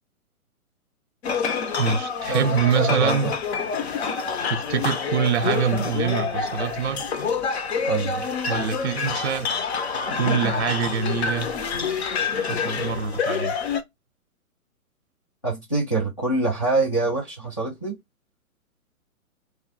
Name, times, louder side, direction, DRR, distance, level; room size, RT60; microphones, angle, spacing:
sound 1, 1.2-13.8, left 5 dB, 45° left, 0.7 m, -27 dB
voice 1, 1.8-3.4 4.5-7.1 8.5-9.5 10.1-11.6 12.4-13.5, right 6 dB, 50° right, 0.6 m, -25 dB
voice 2, 2.3-3.3 7.9-8.3 15.4-17.9, right 3 dB, 25° left, 0.3 m, -25 dB
3.1 x 2.2 x 3.8 m
figure-of-eight pair, 125°, 44 cm